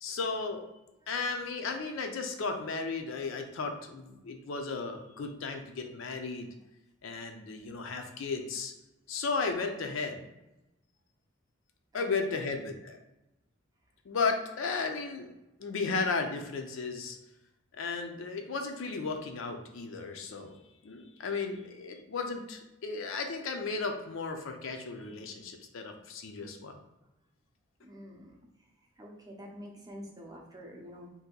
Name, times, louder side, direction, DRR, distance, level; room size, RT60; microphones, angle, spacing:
voice 1, 0.0-0.6 1.1-6.5 7.0-8.7 9.1-10.2 11.9-13.0 14.1-15.3 15.6-17.2 17.8-20.6 20.8-26.7, left 4 dB, 65° left, 5 dB, 0.5 m, -34 dB
voice 2, 11.9-12.5 27.8-28.4 29.0-31.1, equal, 20° right, -1 dB, 0.6 m, -47 dB
2.7 x 2.6 x 3.7 m, 0.95 s
head